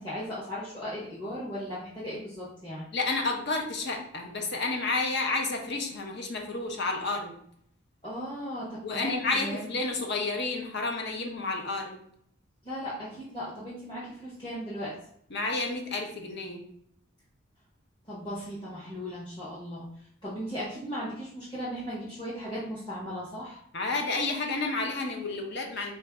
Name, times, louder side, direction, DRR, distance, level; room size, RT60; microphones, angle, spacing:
voice 1, 0.0-2.9 8.0-9.7 12.6-14.9 18.1-19.9 20.2-23.6, equal, 20° left, -9 dB, 1.0 m, -37 dB
voice 2, 2.9-7.3 8.8-12.0 15.3-16.6 23.7-25.9, left 3 dB, 55° left, 3 dB, 0.7 m, -30 dB
4.2 x 2.6 x 3.4 m, 0.67 s
head